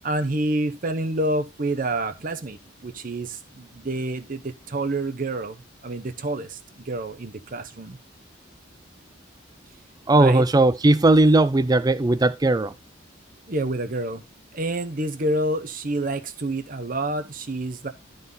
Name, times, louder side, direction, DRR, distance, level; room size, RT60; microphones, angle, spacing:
voice 1, 0.0-5.6 5.8-8.0 10.1-10.5 13.5-14.2 14.5-17.9, right 2 dB, 45° right, 0.7 m, -28 dB
voice 2, 10.1-12.7, right 2 dB, 20° right, 0.4 m, -18 dB
11.5 x 4.0 x 5.4 m
head